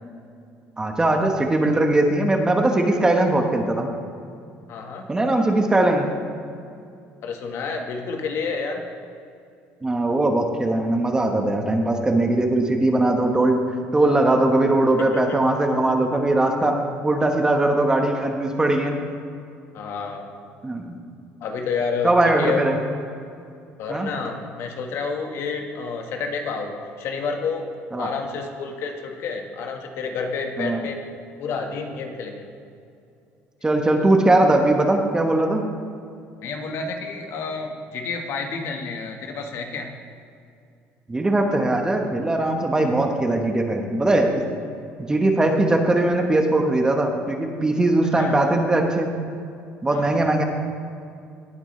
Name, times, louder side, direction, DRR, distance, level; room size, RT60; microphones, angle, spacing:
voice 1, 0.8-3.9 5.1-6.1 9.8-13.6 13.9-19.0 20.6-21.0 22.0-22.8 23.9-24.1 27.9-28.1 30.6-30.8 33.6-35.6 41.1-44.4 45.1-49.1 49.8-50.4, right 2 dB, 15° right, 3 dB, 1.1 m, -20 dB
voice 2, 4.7-5.1 7.2-8.8 14.0-14.4 15.0-15.4 19.7-20.3 21.4-22.6 23.8-27.7 28.0-31.0 31.4-32.5 36.4-39.9 48.2-48.4 49.9-50.1, left 5 dB, 60° left, 3 dB, 1.4 m, -29 dB
18.0 x 8.7 x 3.2 m, 2.5 s
cardioid pair, 120°, 5 cm